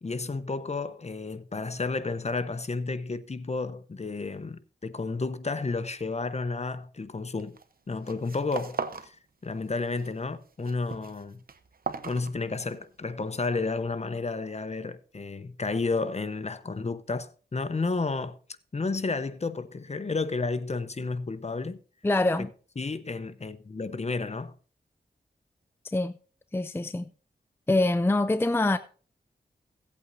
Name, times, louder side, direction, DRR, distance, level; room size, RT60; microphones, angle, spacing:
voice 1, 0.0-7.6 7.9-9.2 9.4-11.4 12.0-18.4 18.7-21.8 22.8-24.5, left 3 dB, 40° left, 0.8 m, -31 dB
sound 1, 7.4-7.7 8.0-9.1 9.4-10.1 10.4-12.9, right 5 dB, 55° right, 0.9 m, -38 dB
voice 2, 22.0-22.5 25.8-26.1 26.5-27.1 27.7-28.8, left 2 dB, 15° left, 0.5 m, -24 dB
16.5 x 8.5 x 2.7 m
cardioid pair, 50°, 18 cm